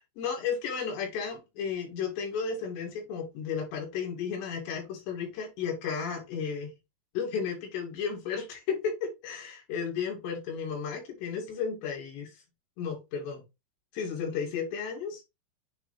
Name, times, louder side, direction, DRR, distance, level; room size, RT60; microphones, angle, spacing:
voice 1, 0.0-6.7 7.1-12.4 12.8-13.4 13.9-15.2, left 6 dB, 70° left, 4.8 m, -33 dB
9.0 x 3.5 x 3.4 m
omnidirectional pair, 5.3 m